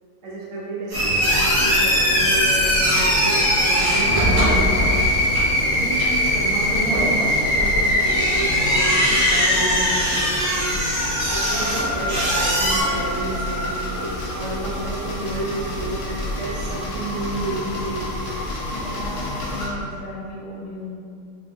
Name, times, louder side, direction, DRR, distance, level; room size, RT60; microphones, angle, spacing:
voice 1, 0.2-4.8 5.6-10.8 11.3-18.1, right 2 dB, 60° right, -6 dB, 0.8 m, -31 dB
sound 1, 0.9-19.7, left 1 dB, 60° left, 0.6 m, -23 dB
sound 2, 0.9-12.8, right 1 dB, 90° right, 1.8 m, -23 dB
voice 2, 18.7-20.9, left 1 dB, 80° left, -6 dB, 1.2 m, -35 dB
4.5 x 2.5 x 2.8 m, 2.4 s
omnidirectional pair, 1.9 m